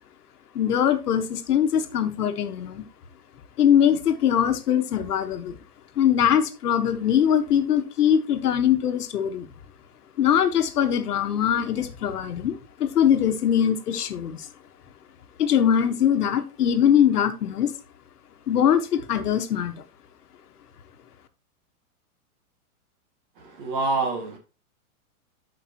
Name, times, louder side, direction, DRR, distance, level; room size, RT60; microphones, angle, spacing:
voice 1, 0.5-2.8 3.6-5.6 6.0-9.5 10.2-14.5 15.4-17.7 18.5-19.8, left 9 dB, 85° left, 1.3 m, -22 dB
voice 2, 23.6-24.4, right 3 dB, 35° right, 2.0 m, -26 dB
12.0 x 5.3 x 2.9 m
hypercardioid pair, 175°, 45 cm